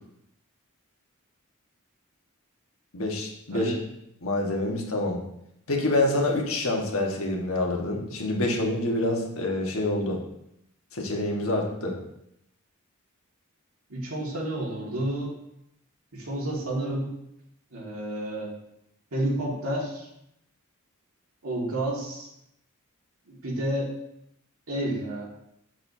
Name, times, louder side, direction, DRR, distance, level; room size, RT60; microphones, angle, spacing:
voice 1, 2.9-3.7 4.2-5.2 5.7-10.2 10.9-11.9, left 2 dB, 70° left, 0 dB, 1.5 m, -27 dB
voice 2, 13.9-15.3 16.1-17.1 17.7-18.5 19.1-20.1 21.4-22.3 23.3-23.9 24.7-25.2, right 1 dB, 80° right, -3 dB, 2.1 m, -30 dB
7.6 x 6.7 x 2.8 m, 0.79 s
head